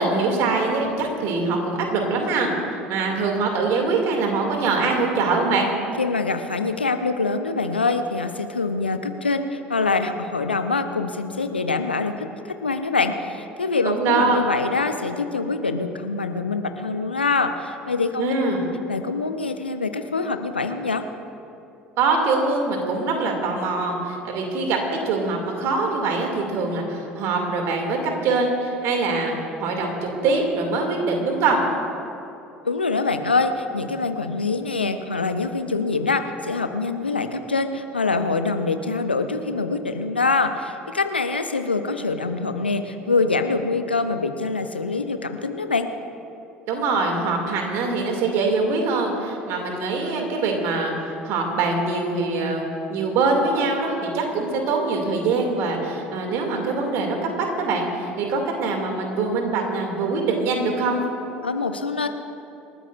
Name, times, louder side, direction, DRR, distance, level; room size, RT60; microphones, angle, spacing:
voice 1, 0.0-2.5 2.9-5.7 13.8-14.4 18.2-18.6 22.0-31.6 46.7-61.0, right 3 dB, 55° right, 2 dB, 2.6 m, -23 dB
voice 2, 6.0-12.3 12.6-18.3 18.9-21.0 32.6-45.9 61.4-62.1, left 3 dB, 85° left, 8 dB, 0.7 m, -24 dB
27.5 x 13.0 x 2.6 m, 2.8 s
figure-of-eight pair, 60°, 5 cm